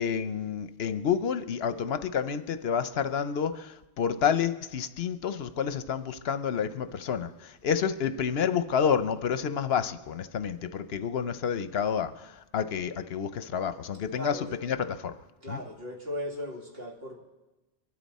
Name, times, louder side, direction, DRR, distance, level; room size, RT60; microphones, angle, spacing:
voice 1, 0.0-15.2 15.5-15.6, left 7 dB, 75° left, 11 dB, 0.9 m, -29 dB
voice 2, 14.1-14.6 15.4-17.2, equal, 65° right, -2 dB, 2.8 m, -37 dB
23.5 x 12.5 x 4.2 m, 1.1 s
omnidirectional pair, 1.1 m